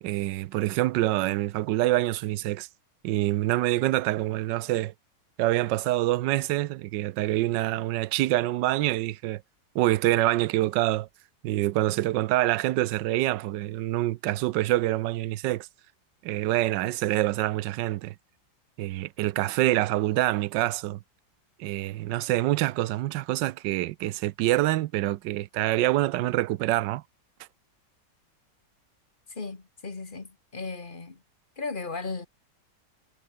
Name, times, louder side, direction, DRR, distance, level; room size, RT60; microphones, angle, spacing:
voice 1, 0.0-2.7 3.0-4.9 5.4-9.4 9.7-11.1 11.4-15.7 16.2-18.1 18.8-21.0 21.6-27.0, right 16 dB, 80° right, 1.3 m, -26 dB
voice 2, 29.3-31.2 31.6-32.3, left 4 dB, 30° left, 2.0 m, -36 dB
omnidirectional pair, 1.9 m